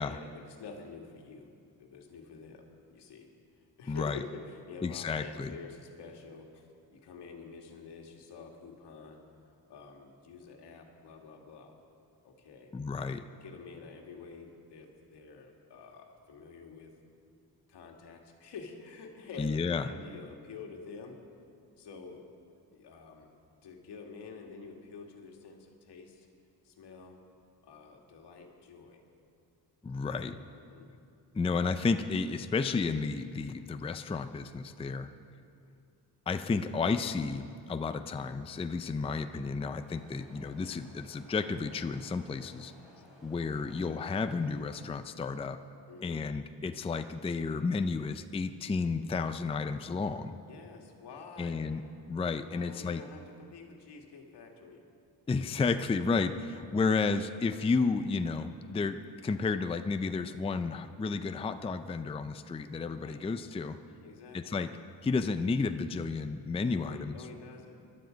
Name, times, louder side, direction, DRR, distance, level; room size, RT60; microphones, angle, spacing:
voice 1, 0.0-1.5 1.8-9.2 9.7-11.7 12.2-12.7 13.4-16.9 17.7-21.2 21.8-22.3 22.7-23.3 23.6-26.3 26.6-27.2 27.6-29.0 30.5-30.9 38.9-39.1 45.9-46.2 50.5-51.7 52.5-54.8 63.0-63.3 64.0-64.6 66.7-67.8, left 5 dB, 80° left, 2 dB, 2.1 m, -48 dB
voice 2, 3.9-4.2 4.8-5.6 12.7-13.2 19.4-19.8 29.8-30.4 31.3-35.1 36.3-42.7 43.2-45.6 46.0-50.4 51.4-51.8 52.1-53.0 55.3-63.8 64.3-64.7 65.0-67.2, left 4 dB, 15° left, 9 dB, 0.4 m, -32 dB
sound 1, 39.8-44.9, left 1 dB, ahead, 4.3 m, -58 dB
21.5 x 12.0 x 5.2 m, 2.4 s
cardioid pair, 120°, 40 cm